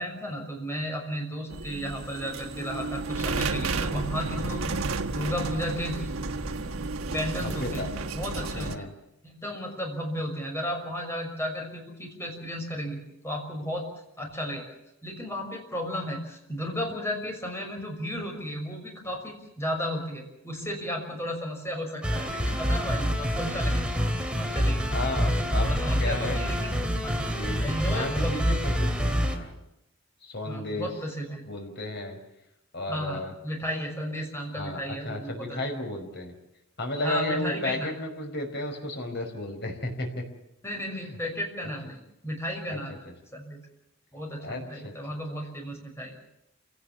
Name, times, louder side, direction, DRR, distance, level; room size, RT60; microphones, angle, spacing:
voice 1, 0.0-4.8 5.1-6.1 7.1-7.8 8.1-8.9 9.2-13.8 14.2-14.7 15.0-23.8 24.3-24.9 25.2-27.1 27.6-28.3 30.4-31.4 32.9-35.6 37.0-37.9 40.6-43.0 43.3-43.6 44.1-46.2, equal, 10° left, 2 dB, 6.0 m, -34 dB
sound 1, 1.5-8.8, right 3 dB, 85° right, 1.4 m, -32 dB
voice 2, 7.4-7.9 8.3-8.9 24.9-25.7 26.0-26.4 27.3-29.6 30.2-30.9 31.5-32.2 32.7-33.3 34.5-36.3 36.8-40.2 41.0-41.2 42.7-42.8 43.0-43.1 44.4-44.9, left 1 dB, 55° left, 4 dB, 5.2 m, -33 dB
sound 2, 22.0-29.4, equal, 5° right, 3.0 m, -27 dB
28.5 x 17.5 x 7.4 m, 0.86 s
head